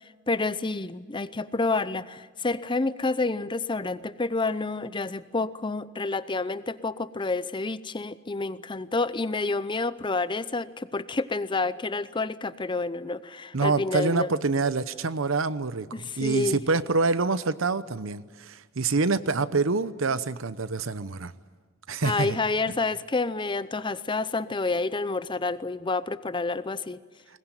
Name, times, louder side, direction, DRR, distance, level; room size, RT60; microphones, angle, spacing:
voice 1, 0.3-14.3 15.9-16.6 22.0-27.0, left 3 dB, 25° left, 15 dB, 0.7 m, -29 dB
voice 2, 13.5-21.3 21.9-22.4, right 3 dB, 75° right, 14 dB, 0.9 m, -26 dB
21.0 x 21.0 x 9.1 m, 1.4 s
head